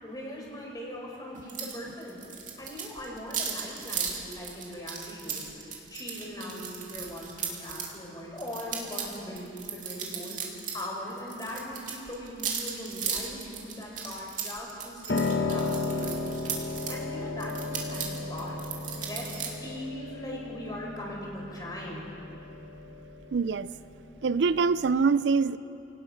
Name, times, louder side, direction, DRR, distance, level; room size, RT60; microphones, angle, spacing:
voice 1, 0.0-2.2 2.6-5.5 5.9-10.4 10.7-16.5 16.8-22.1, left 1 dB, 20° left, -2 dB, 4.6 m, -40 dB
sound 1, 1.5-1.8 2.0-7.9 8.4-10.8 11.1-17.0 17.4-19.5, right 7 dB, 45° right, 2.6 m, -36 dB
Piano, 15.1-25.0, left 3 dB, 65° left, 1.3 m, -34 dB
voice 2, 23.3-23.7 24.2-25.6, right 5 dB, 75° right, 16 dB, 0.4 m, -24 dB
27.0 x 18.5 x 5.9 m, 3.0 s
head